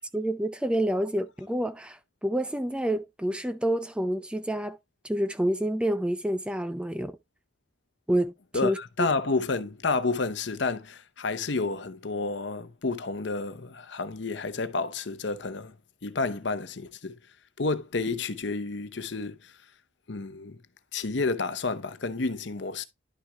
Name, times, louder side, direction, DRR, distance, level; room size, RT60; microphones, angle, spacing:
voice 1, 0.1-4.8 5.0-7.2 8.1-8.3 8.6-9.1, right 1 dB, 5° right, 0.4 m, -28 dB
voice 2, 8.5-15.7 16.0-17.1 17.6-19.5 20.1-20.6 20.9-22.8, left 3 dB, 65° left, 0.8 m, -30 dB
11.0 x 5.9 x 2.3 m
head